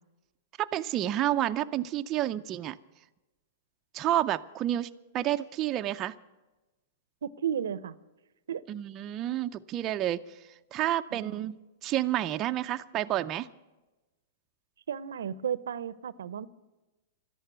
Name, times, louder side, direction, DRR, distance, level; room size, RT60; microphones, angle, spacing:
voice 1, 0.6-2.8 3.9-6.2 8.7-10.4 10.7-11.5 11.8-13.5, right 13 dB, 30° right, 0.5 m, -30 dB
voice 2, 7.2-8.0 8.5-8.6 11.1-11.4 14.9-16.5, right 8 dB, 85° right, 0.7 m, -33 dB
13.0 x 11.0 x 9.3 m
hypercardioid pair, 140°, 0 cm